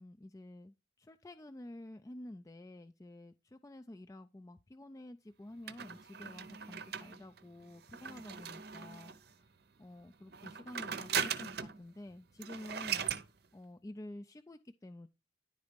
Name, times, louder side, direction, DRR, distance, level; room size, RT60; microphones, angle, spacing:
voice 1, 0.0-9.1 9.8-15.1, left 1 dB, 15° left, 0.4 m, -50 dB
sound 1, 5.7-9.3 10.3-11.8 12.1-12.2 12.4-13.3, right 7 dB, 60° right, 0.7 m, -39 dB
10.5 x 4.1 x 5.1 m
head